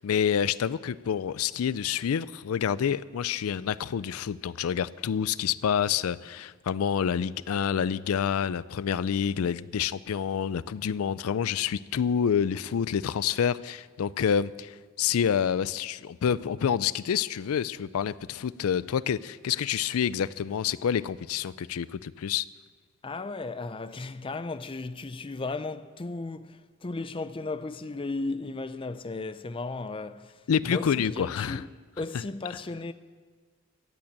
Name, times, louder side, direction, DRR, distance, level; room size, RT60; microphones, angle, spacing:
voice 1, 0.0-22.5 30.5-31.6 32.1-32.2, left 8 dB, 80° left, 0.4 m, -28 dB
voice 2, 23.0-31.7 32.0-32.9, left 3 dB, 25° left, 0.5 m, -35 dB
15.0 x 8.7 x 8.9 m
head